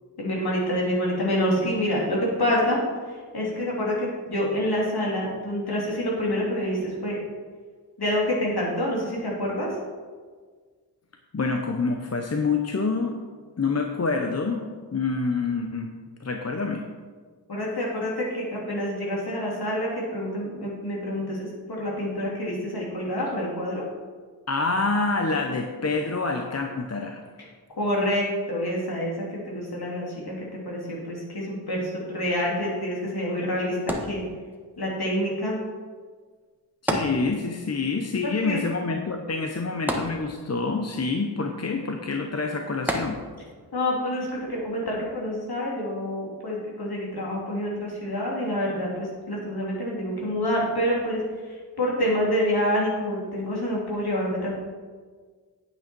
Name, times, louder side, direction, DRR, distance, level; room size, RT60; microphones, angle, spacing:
voice 1, 0.2-2.8 3.3-7.2 8.0-9.7 17.5-23.8 27.8-30.3 30.6-33.8 34.0-34.2 34.8-35.6 38.4-38.6 43.7-51.2 51.8-54.5, equal, 60° left, -4 dB, 3.3 m, -27 dB
voice 2, 11.3-13.2 13.6-14.6 14.9-15.9 16.2-16.8 24.5-27.2 36.8-43.2, left 4 dB, 35° left, 4 dB, 0.8 m, -27 dB
sound 1, 33.9-34.8 36.9-37.7 38.0-38.1 39.9-40.7 42.9-43.6 44.3-44.4, equal, 5° right, 1.4 m, -30 dB
8.8 x 8.7 x 4.5 m, 1.5 s
cardioid pair, 55°, 42 cm